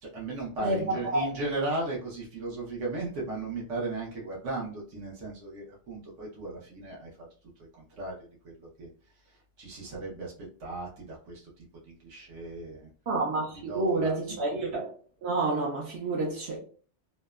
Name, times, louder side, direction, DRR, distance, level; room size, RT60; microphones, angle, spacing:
voice 1, 0.0-7.3 7.7-8.1 8.4-8.9 9.2-10.3 10.6-12.9 13.5-14.4, right 2 dB, 85° right, 1.1 m, -36 dB
voice 2, 0.6-1.3 13.1-14.9 15.2-16.6, right 2 dB, 65° right, 0.9 m, -29 dB
2.8 x 2.1 x 2.2 m
omnidirectional pair, 1.2 m